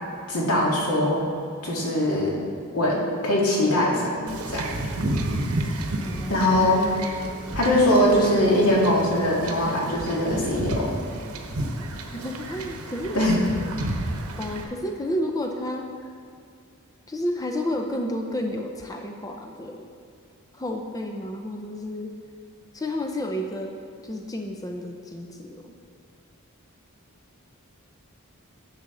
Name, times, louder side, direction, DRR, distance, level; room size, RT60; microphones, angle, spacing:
voice 1, 0.3-1.2 1.6-2.4 2.7-4.7 6.3-6.8 7.6-10.9 13.1-13.4, left 1 dB, 90° left, -4 dB, 2.1 m, -21 dB
Wind / Ocean / Boat Water vehicle, 4.3-14.6, right 1 dB, 85° right, 0.9 m, -31 dB
voice 2, 6.0-6.8 12.1-13.2 14.4-15.9 17.1-19.9 20.5-22.1 22.7-23.7 24.0-25.7, left 1 dB, 15° left, 3 dB, 0.5 m, -31 dB
10.5 x 7.3 x 3.8 m, 2.3 s
head